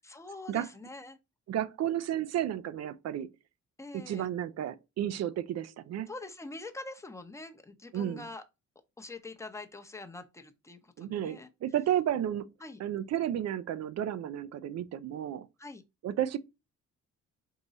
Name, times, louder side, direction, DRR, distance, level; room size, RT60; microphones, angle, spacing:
voice 1, 0.0-1.2 3.8-4.3 6.1-8.4 9.0-11.5 12.6-12.8 15.6-15.8, left 2 dB, 10° left, 0.7 m, -44 dB
voice 2, 1.5-3.3 3.9-6.1 7.9-8.3 11.0-12.5 12.8-15.5 16.0-16.4, right 11 dB, 60° right, 0.5 m, -32 dB
3.8 x 2.9 x 4.0 m
cardioid pair, 90°, 30 cm